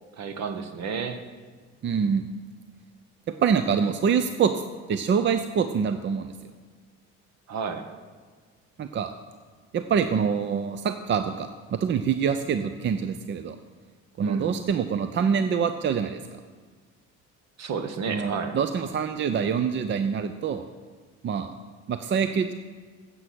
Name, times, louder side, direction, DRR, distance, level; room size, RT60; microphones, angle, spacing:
voice 1, 0.2-1.2 7.5-7.8 14.2-14.5 17.6-18.6, right 5 dB, 60° right, 8 dB, 1.2 m, -31 dB
voice 2, 1.8-2.3 3.3-4.6 4.9-6.3 8.8-9.1 9.7-13.6 14.2-16.4 18.1-20.6 21.2-21.5 21.9-22.5, right 7 dB, 40° right, 9 dB, 0.6 m, -25 dB
9.5 x 7.9 x 6.0 m, 1.5 s
supercardioid pair, 90°, 31 cm